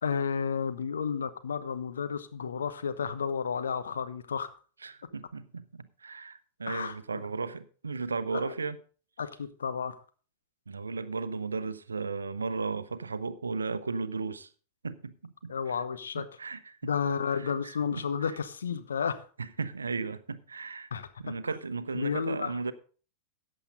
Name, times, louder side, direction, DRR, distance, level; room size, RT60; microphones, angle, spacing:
voice 1, 0.0-4.5 6.7-7.3 8.3-8.5 9.2-9.9 15.5-16.2 16.8-19.2 20.9-21.3 21.9-22.5, left 6 dB, 70° left, 1.0 m, -32 dB
voice 2, 4.8-8.8 10.7-14.5 14.8-15.8 16.2-16.9 17.3-18.0 19.4-20.9 21.2-22.7, right 4 dB, 75° right, 0.7 m, -35 dB
14.0 x 9.1 x 3.9 m
figure-of-eight pair, 90°, 0 cm